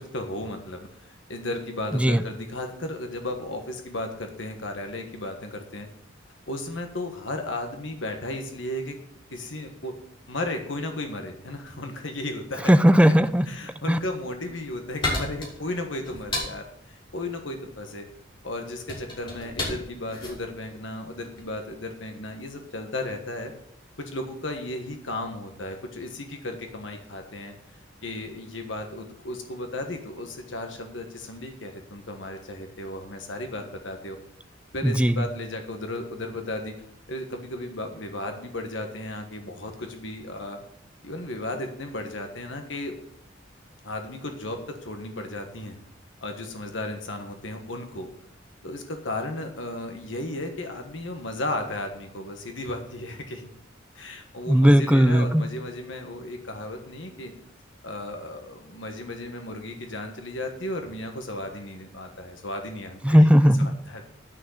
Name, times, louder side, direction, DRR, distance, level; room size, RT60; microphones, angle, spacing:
voice 1, 0.0-5.9 6.5-8.9 9.3-9.9 10.3-12.7 13.5-18.0 18.4-23.5 24.0-27.5 28.0-34.2 34.7-36.7 37.1-40.6 41.0-42.9 43.8-45.8 46.2-48.1 48.6-53.5 53.9-57.3 57.8-63.2 63.6-64.0, left 1 dB, 70° left, 5 dB, 1.4 m, -34 dB
voice 2, 12.7-13.5 13.9-14.0 34.8-35.3 54.5-55.4 63.0-63.7, equal, 5° right, 12 dB, 0.4 m, -17 dB
sound 1, 14.4-21.6, left 1 dB, 30° left, 5.9 m, -34 dB
11.0 x 6.4 x 7.2 m, 0.68 s
head